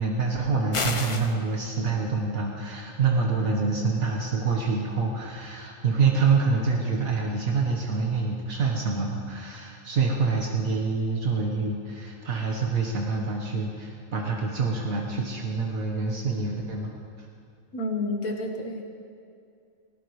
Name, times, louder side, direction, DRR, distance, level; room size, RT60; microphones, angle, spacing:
voice 1, 0.0-16.9, right 4 dB, 75° right, -1 dB, 1.8 m, -26 dB
sound 1, 0.7-1.3, left 3 dB, 30° left, 0.7 m, -29 dB
voice 2, 17.7-18.9, left 2 dB, 85° left, 3 dB, 1.9 m, -30 dB
19.0 x 18.5 x 3.2 m, 2.4 s
omnidirectional pair, 1.5 m